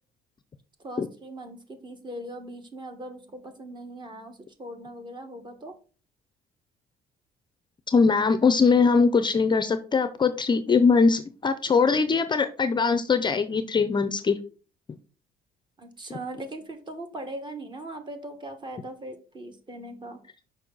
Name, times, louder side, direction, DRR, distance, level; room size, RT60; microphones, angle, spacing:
voice 1, 0.8-5.7 15.8-20.2, right 1 dB, 25° right, 6 dB, 1.5 m, -40 dB
voice 2, 7.9-14.4, left 5 dB, 25° left, 10 dB, 0.5 m, -21 dB
6.2 x 5.3 x 3.9 m, 0.37 s
cardioid pair, 110°, 17 cm